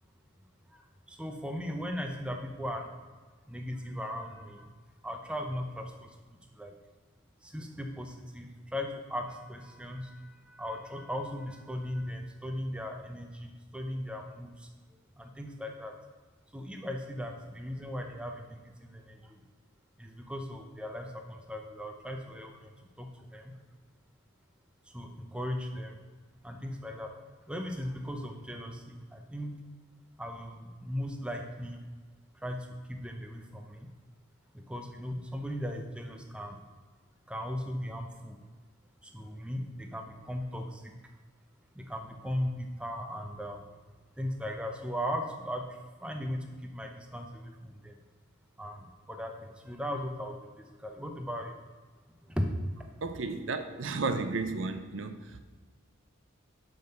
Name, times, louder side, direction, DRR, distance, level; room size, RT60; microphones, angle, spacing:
voice 1, 1.1-2.8 3.5-4.7 5.0-6.1 6.6-6.7 7.4-14.6 15.2-15.9 16.5-19.4 20.0-22.7 23.0-23.1 23.3-23.5 24.9-26.0 26.4-27.1 27.5-29.5 30.2-31.8 32.4-32.6 32.9-33.9 34.7-36.6 37.3-38.4 39.0-40.9 41.8-43.6 44.2-45.6 46.0-46.4 46.7-47.9 48.6-48.8 49.1-50.4 50.8-51.5 52.4-52.5, equal, 5° right, 0.6 m, -37 dB
voice 2, 53.0-55.4, right 3 dB, 65° right, 0.6 m, -33 dB
6.2 x 5.3 x 6.6 m
head